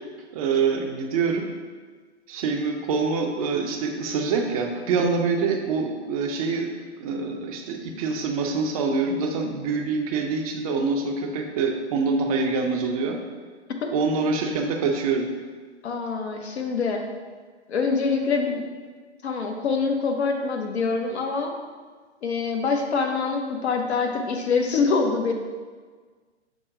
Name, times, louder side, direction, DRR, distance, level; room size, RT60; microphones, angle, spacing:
voice 1, 0.3-1.5 2.3-6.7 7.0-13.2 13.9-15.3, right 4 dB, 35° right, 3 dB, 0.5 m, -25 dB
voice 2, 15.8-17.0 17.7-18.6 19.2-21.5 22.2-25.3, left 4 dB, 70° left, 4 dB, 0.8 m, -25 dB
5.9 x 2.1 x 3.8 m, 1.5 s
hypercardioid pair, 120°, 35 cm